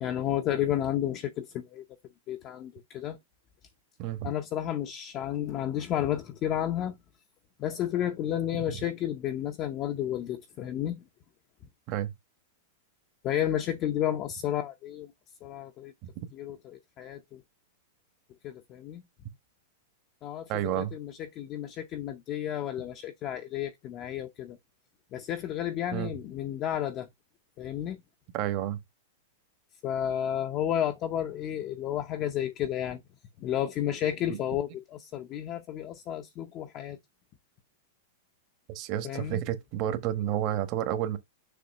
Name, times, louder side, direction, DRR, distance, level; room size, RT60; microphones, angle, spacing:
voice 1, 0.0-1.8 2.3-3.2 4.2-6.9 7.6-11.0 13.2-15.1 15.4-15.9 16.3-17.4 18.4-19.0 20.2-24.6 25.1-27.1 27.6-28.0 29.8-33.0 33.4-37.0 39.0-39.4, left 11 dB, 30° left, 0.7 m, -32 dB
voice 2, 4.0-4.3 11.9-12.1 20.5-20.9 25.9-26.1 28.3-28.8 34.3-34.4 38.7-41.2, right 12 dB, 40° right, 1.2 m, -30 dB
6.8 x 2.8 x 5.2 m
supercardioid pair, 150°, 0 cm